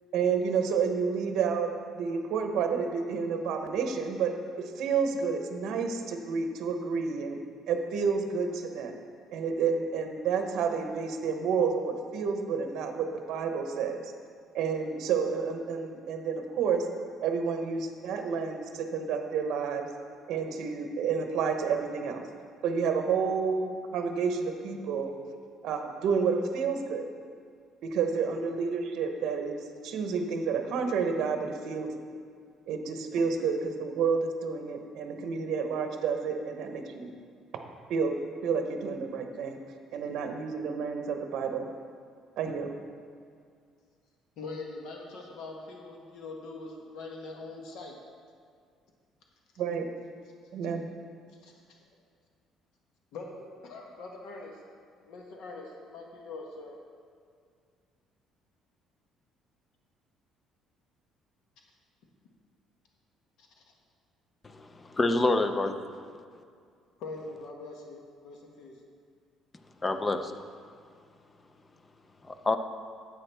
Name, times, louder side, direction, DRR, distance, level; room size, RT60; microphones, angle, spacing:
voice 1, 0.1-7.4 7.7-9.0 9.3-14.0 14.5-16.9 17.2-19.9 20.3-22.2 22.6-25.1 25.6-27.0 27.8-31.9 32.7-37.1 37.5-37.6 37.9-38.1 38.4-39.6 39.9-41.7 42.4-42.7 49.6-49.9 50.5-50.8, right 5 dB, 60° right, 5 dB, 0.8 m, -30 dB
voice 2, 44.4-48.0 51.4-51.5 53.1-54.6 55.1-56.8 63.4-63.6 65.7-66.3 67.0-68.7, left 3 dB, 65° left, 1 dB, 1.0 m, -43 dB
voice 3, 64.5-65.8 69.8-70.3 72.3-72.6, left 2 dB, 15° left, 8 dB, 0.4 m, -27 dB
10.0 x 8.1 x 3.4 m, 2.2 s
cardioid pair, 180°, 0 cm